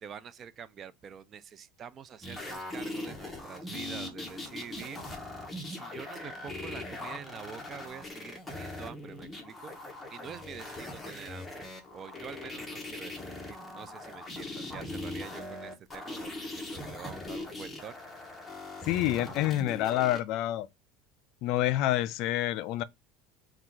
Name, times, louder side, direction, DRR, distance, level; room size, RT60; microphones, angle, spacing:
voice 1, 0.0-5.0 5.7-9.8 10.1-18.0, right 7 dB, 35° right, 0.4 m, -46 dB
sound 1, 2.2-20.2 21.6-21.7, left 2 dB, 10° left, 0.9 m, -41 dB
voice 2, 18.9-20.7 21.4-22.8, left 14 dB, 60° left, 0.3 m, -28 dB
3.5 x 2.3 x 4.5 m
supercardioid pair, 120°, 0 cm